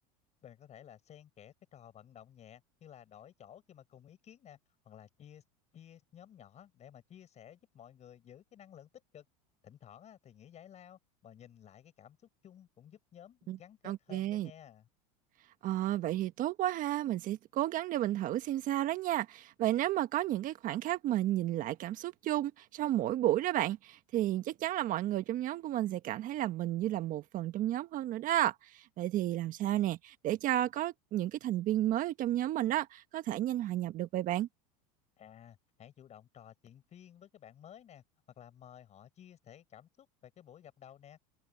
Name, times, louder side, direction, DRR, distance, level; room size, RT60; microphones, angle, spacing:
voice 1, 0.4-4.6 4.8-5.4 5.7-9.2 9.6-14.9 35.2-38.0 38.4-41.2, left 10 dB, 35° left, 6.4 m, -55 dB
voice 2, 13.8-14.5 15.6-34.5, right 13 dB, 45° right, 1.4 m, -32 dB
supercardioid pair, 105°, 19 cm